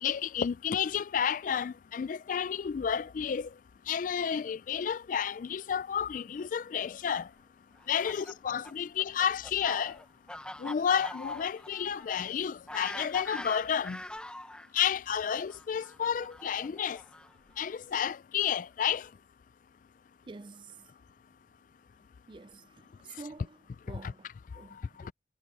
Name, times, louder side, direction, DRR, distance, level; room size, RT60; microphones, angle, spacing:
voice 1, 0.0-3.5 3.9-7.3 7.9-10.0 10.6-14.0 14.7-17.0 17.6-19.1, left 8 dB, 50° left, 0.3 m, -31 dB
Fowl, 7.8-14.7 15.5-17.5, left 1 dB, 5° left, 0.8 m, -44 dB
voice 2, 20.3-20.9 22.3-22.7 23.0-23.6 23.9-24.3 24.5-25.1, right 3 dB, 30° right, 0.4 m, -47 dB
head